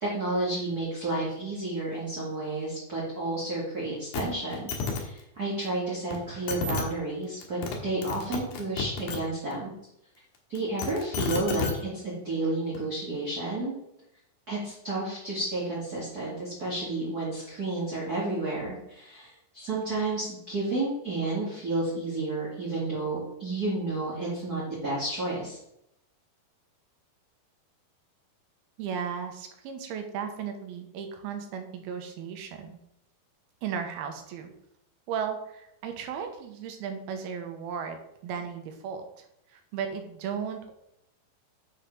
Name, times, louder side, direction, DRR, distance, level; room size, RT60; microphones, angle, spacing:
voice 1, 0.0-9.7 10.5-13.7 14.5-25.6, right 2 dB, 30° right, -6 dB, 1.9 m, -31 dB
sound 1, 4.1-4.2 4.5-5.0 6.1-6.2 6.5-6.8 7.4-7.8 8.0-9.2 10.5-11.7 12.7-12.8, left 5 dB, 75° left, 3.2 m, -30 dB
voice 2, 28.8-32.8 33.6-34.5 35.1-40.7, right 7 dB, 80° right, 5 dB, 2.8 m, -35 dB
7.2 x 5.2 x 5.9 m, 0.80 s
omnidirectional pair, 4.5 m